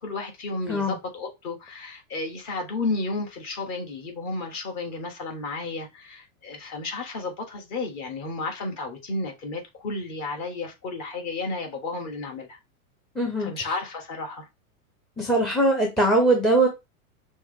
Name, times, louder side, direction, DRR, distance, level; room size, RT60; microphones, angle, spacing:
voice 1, 0.0-12.6 13.4-14.5, left 3 dB, 40° left, 1.6 m, -32 dB
voice 2, 13.2-13.5 15.2-16.7, right 1 dB, ahead, 0.5 m, -21 dB
6.1 x 2.2 x 3.5 m
supercardioid pair, 135°, 45 cm